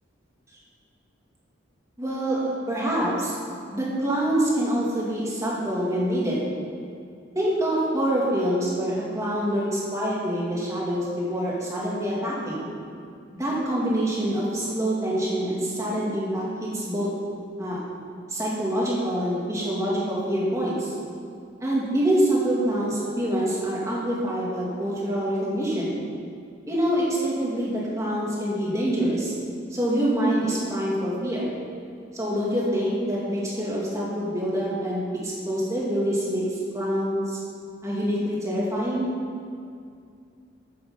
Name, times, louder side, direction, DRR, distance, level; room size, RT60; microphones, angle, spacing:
voice 1, 2.0-3.4 3.7-6.4 7.3-12.7 13.4-17.1 17.6-17.8 18.3-20.9 21.6-26.0 26.7-29.3 29.7-31.5 32.1-36.4 36.7-37.4 37.8-39.1, right 1 dB, 15° right, -6 dB, 2.4 m, -26 dB
9.3 x 6.9 x 7.0 m, 2.3 s
head